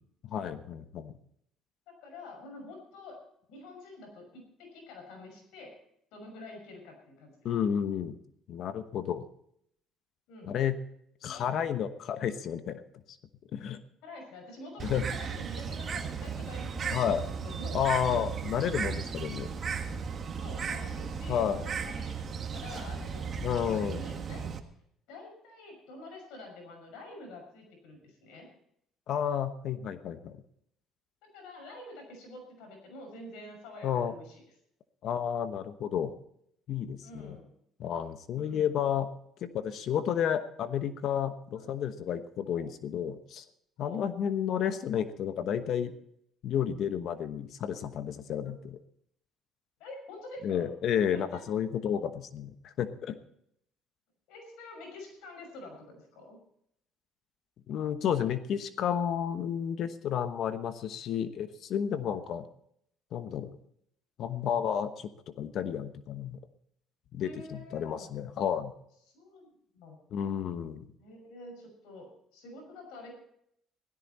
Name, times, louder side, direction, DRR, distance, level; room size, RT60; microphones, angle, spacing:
voice 1, 0.3-1.1 7.4-8.2 8.5-9.2 10.5-10.8 11.2-12.8 13.5-13.8 14.8-15.0 16.9-17.2 17.7-19.5 21.3-21.6 23.4-24.0 29.1-30.4 33.8-34.2 35.0-36.1 36.7-37.4 37.8-39.1 39.4-43.4 43.8-45.9 46.4-48.8 50.4-53.2 57.7-62.5 63.1-63.6 64.2-65.1 65.4-66.4 67.1-68.7 70.1-70.9, left 8 dB, 60° left, 11 dB, 1.0 m, -31 dB
voice 2, 1.9-3.2 3.5-5.7 6.1-7.5 10.3-10.6 11.2-11.5 14.0-17.1 17.4-17.8 20.4-23.3 23.6-24.5 25.1-28.5 31.3-34.4 37.0-37.6 38.4-38.8 41.6-41.7 42.5-42.6 43.8-44.1 48.4-48.6 49.8-50.7 51.1-51.4 54.3-56.4 67.2-68.1 69.1-69.5 69.7-70.0 71.0-73.1, left 2 dB, 85° left, 2 dB, 6.1 m, -47 dB
Bird, 14.8-24.6, right 6 dB, 40° right, 1.7 m, -36 dB
16.5 x 13.5 x 4.3 m, 0.71 s
cardioid pair, 95°, 0 cm